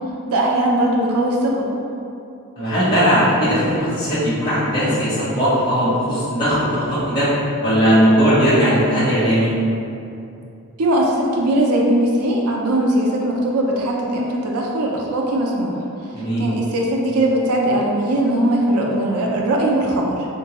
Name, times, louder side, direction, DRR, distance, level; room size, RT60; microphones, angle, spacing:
voice 1, 0.3-1.7 10.8-20.3, right 1 dB, 90° right, -1 dB, 0.5 m, -20 dB
voice 2, 2.6-7.3 7.6-9.5 16.1-16.4, equal, 20° left, -13 dB, 0.9 m, -18 dB
3.7 x 2.6 x 3.0 m, 2.6 s
head